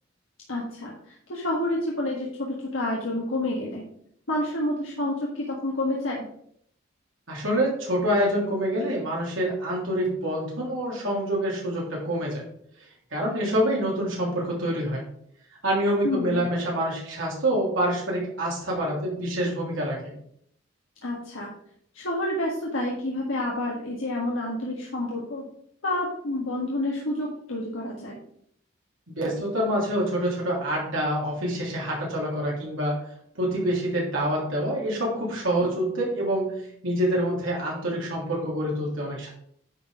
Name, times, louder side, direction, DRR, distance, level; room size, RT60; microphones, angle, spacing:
voice 1, 0.5-3.9 4.3-6.2 16.0-16.5 21.0-21.5 21.9-25.5 25.8-28.2, left 1 dB, 90° left, -3 dB, 1.5 m, -29 dB
voice 2, 7.3-12.4 13.1-15.0 15.6-20.1 29.1-33.0 33.3-39.3, equal, 85° right, -4 dB, 3.0 m, -26 dB
9.8 x 4.2 x 5.0 m, 0.68 s
head